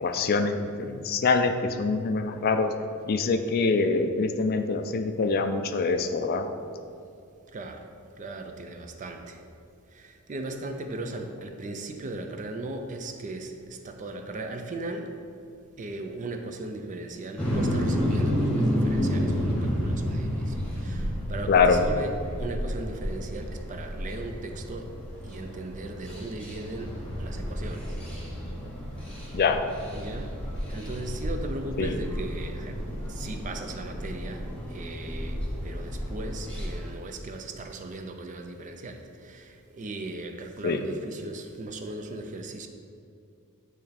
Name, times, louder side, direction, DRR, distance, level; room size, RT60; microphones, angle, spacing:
voice 1, 0.0-2.7 3.1-6.5 21.5-21.8 29.3-29.7 31.8-32.0 40.6-40.8, left 4 dB, 45° left, 7 dB, 0.3 m, -24 dB
voice 2, 7.5-7.9 8.2-9.4 9.9-15.1 15.8-22.1 22.4-24.9 25.2-28.0 29.9-30.3 30.7-32.8 33.1-42.7, right 2 dB, 35° right, 5 dB, 0.4 m, -38 dB
sound 1, 17.4-36.9, equal, 5° left, 1.2 m, -31 dB
9.0 x 3.2 x 4.1 m, 2.5 s
head